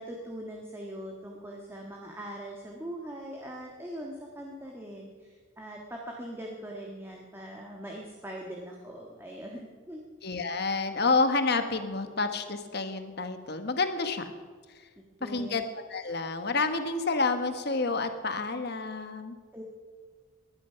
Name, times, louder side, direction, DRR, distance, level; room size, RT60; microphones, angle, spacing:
voice 1, 0.0-10.0 15.0-15.6 19.5-19.6, equal, 10° right, -1 dB, 1.6 m, -41 dB
voice 2, 10.2-14.2 14.8-14.9 15.2-15.6 15.9-19.4, left 3 dB, 55° left, 8 dB, 1.3 m, -29 dB
20.0 x 11.5 x 5.8 m, 1.5 s
head